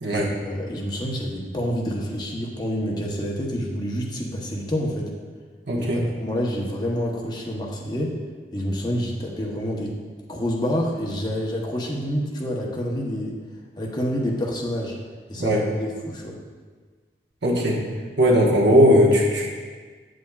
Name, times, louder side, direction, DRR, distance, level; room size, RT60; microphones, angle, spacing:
voice 1, 0.1-5.1 5.8-8.1 8.5-10.0 10.3-13.3 13.8-15.0 15.3-16.4, equal, 25° left, -2 dB, 0.8 m, -28 dB
voice 2, 5.7-6.0 15.4-15.6 17.4-17.8 18.2-19.5, equal, 85° right, -2 dB, 1.2 m, -18 dB
8.1 x 7.6 x 2.3 m, 1.5 s
head